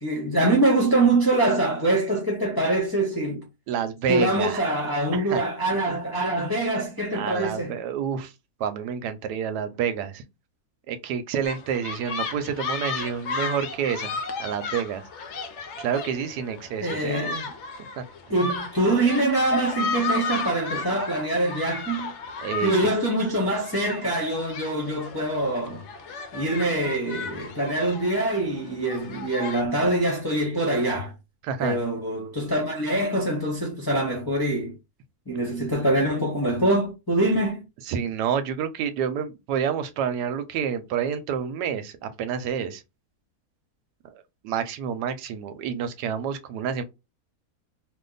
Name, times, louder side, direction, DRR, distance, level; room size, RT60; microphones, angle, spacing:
voice 1, 0.0-3.4 4.1-7.7 16.8-17.4 18.3-22.1 22.6-25.8 26.3-31.1 31.6-34.8 35.3-37.6, right 1 dB, 25° left, 0.5 m, -24 dB
voice 2, 3.7-4.6 5.1-5.4 7.1-8.3 8.6-10.2 10.9-15.0 15.8-17.5 18.0-18.1 22.4-22.7 31.4-31.8 37.9-42.8 44.4-46.8, right 7 dB, 85° right, 1.2 m, -28 dB
sound 1, 11.4-29.6, left 4 dB, 70° left, 0.6 m, -34 dB
2.8 x 2.2 x 3.8 m
omnidirectional pair, 1.7 m